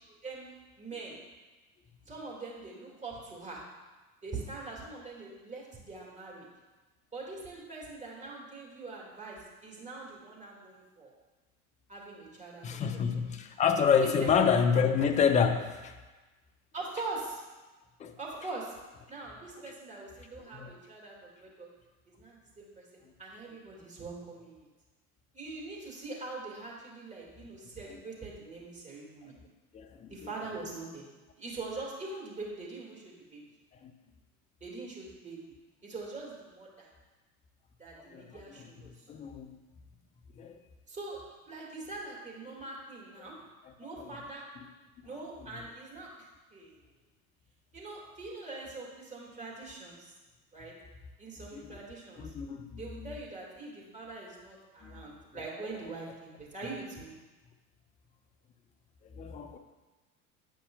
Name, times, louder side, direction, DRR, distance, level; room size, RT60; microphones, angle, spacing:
voice 1, 0.8-1.2 2.1-3.6 4.2-6.5 7.1-11.1 11.9-13.0 14.0-14.5 16.7-17.4 18.2-18.7 19.1-21.7 22.1-22.8 23.2-24.7 25.3-29.3 30.1-31.1 31.4-33.4 34.6-35.5 35.8-36.9 37.8-39.0 40.9-41.2 41.5-43.4 43.8-44.4 45.0-46.1 46.5-46.8 47.7-50.1 50.5-50.7 51.2-52.3 52.8-57.1, right 3 dB, 15° right, -4 dB, 1.9 m, -43 dB
voice 2, 12.6-15.9 18.0-18.1 19.7-19.8 20.5-20.7 29.7-30.3 33.8-33.9 38.1-38.7 39.1-39.5 40.4-40.6 44.0-44.1 51.5-51.8 52.2-53.1 54.8-55.0 59.1-59.6, left 6 dB, 15° left, 6 dB, 0.4 m, -28 dB
8.5 x 5.4 x 2.3 m, 1.2 s
hypercardioid pair, 80°, 44 cm